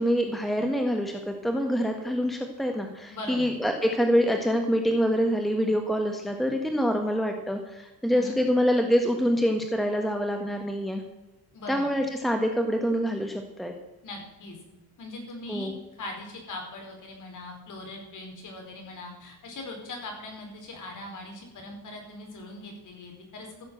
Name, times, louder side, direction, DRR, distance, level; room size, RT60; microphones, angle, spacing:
voice 1, 0.0-11.0 11.7-13.7 15.5-15.7, equal, ahead, 4 dB, 1.3 m, -26 dB
voice 2, 3.1-3.5 8.1-8.4 11.5-11.9 14.0-14.6 15.0-23.5, left 2 dB, 45° left, 2 dB, 4.6 m, -40 dB
15.0 x 7.2 x 7.7 m, 1.0 s
cardioid pair, 125°, 42 cm